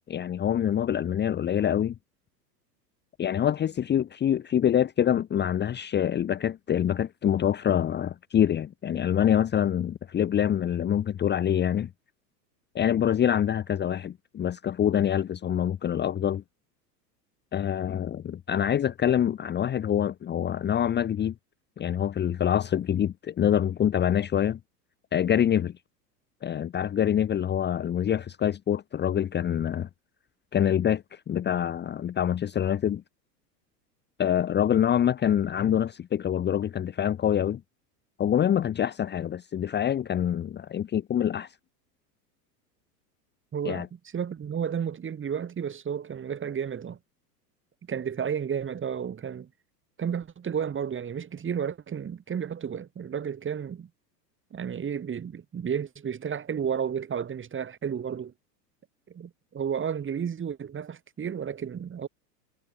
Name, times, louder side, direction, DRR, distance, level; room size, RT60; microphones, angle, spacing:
voice 1, 0.1-1.9 3.2-11.9 12.7-16.4 17.5-21.3 21.8-24.6 25.1-25.7 26.4-29.9 30.5-33.0 34.2-37.6 38.2-41.5 43.6-43.9, left 9 dB, 20° left, 1.1 m, -25 dB
voice 2, 43.5-47.0 47.8-49.5 50.0-53.9 54.5-58.3 59.1-62.1, right 7 dB, 25° right, 6.0 m, -32 dB
hypercardioid pair, 95°, 49 cm